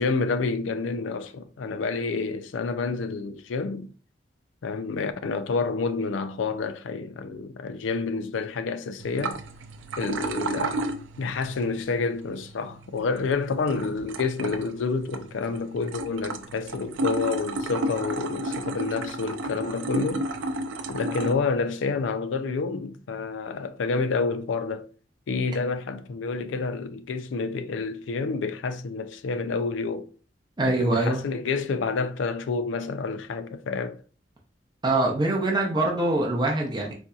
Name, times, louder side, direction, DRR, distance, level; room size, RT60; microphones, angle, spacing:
voice 1, 0.0-3.9 4.6-9.4 10.0-10.8 11.2-20.3 20.9-24.9 25.3-30.1 30.6-34.0, left 4 dB, 85° left, 0.4 m, -29 dB
sound 1, 9.0-21.3, right 1 dB, 90° right, 0.4 m, -33 dB
voice 2, 30.6-31.2 34.8-36.9, right 2 dB, 25° right, 0.6 m, -24 dB
4.2 x 2.6 x 2.3 m
head